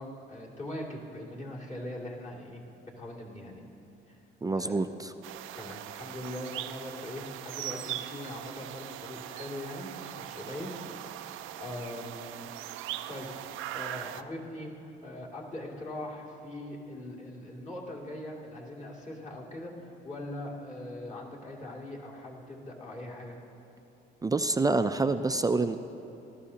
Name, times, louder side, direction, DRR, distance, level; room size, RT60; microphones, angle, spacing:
voice 1, 0.0-3.6 4.1-4.2 4.5-4.8 5.6-11.3 11.6-12.5 13.1-13.3 13.7-23.4, left 1 dB, 35° left, -3 dB, 2.5 m, -41 dB
voice 2, 4.4-4.9 24.2-25.8, right 3 dB, 20° right, 9 dB, 0.4 m, -26 dB
sound 1, 5.2-14.2, right 13 dB, 90° right, 0.4 m, -40 dB
18.5 x 13.0 x 2.8 m, 2.9 s
cardioid pair, 90°, 20 cm